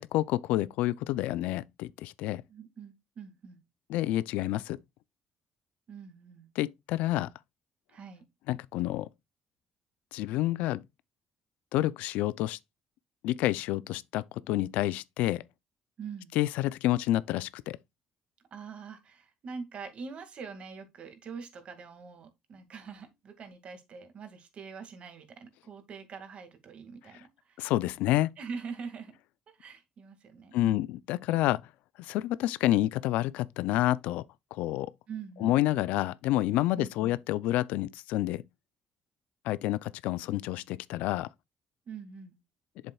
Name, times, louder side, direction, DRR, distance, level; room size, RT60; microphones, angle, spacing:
voice 1, 0.0-2.4 3.9-4.8 6.6-7.3 8.5-9.1 10.1-10.8 11.7-12.6 13.2-15.4 16.3-17.8 27.6-28.3 30.5-31.7 32.0-34.2 34.5-34.9 35.4-38.4 39.4-41.3, left 15 dB, 85° left, 0.4 m, -29 dB
voice 2, 2.5-3.6 5.9-6.5 7.9-8.2 16.0-16.3 18.5-27.6 28.4-29.2 29.5-30.9 35.1-35.6 36.8-37.2 41.9-42.4, right 5 dB, 55° right, 2.0 m, -44 dB
7.7 x 7.0 x 2.3 m
cardioid pair, 90°, 2 cm